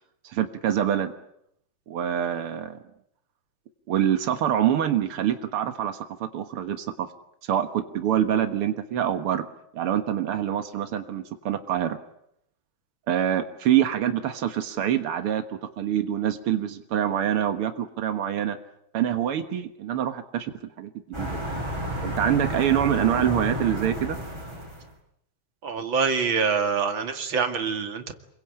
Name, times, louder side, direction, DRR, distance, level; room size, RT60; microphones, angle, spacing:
voice 1, 0.2-1.1 1.9-2.8 3.9-7.1 7.4-9.5 9.7-12.0 13.1-18.6 18.9-20.5 20.8-21.4 22.0-24.2, right 10 dB, 70° right, 7 dB, 1.3 m, -25 dB
sound 1, 21.1-24.9, equal, 5° right, 6.1 m, -31 dB
voice 2, 25.6-28.1, right 5 dB, 40° right, 6 dB, 2.3 m, -25 dB
28.5 x 22.5 x 8.9 m, 0.75 s
omnidirectional pair, 4.5 m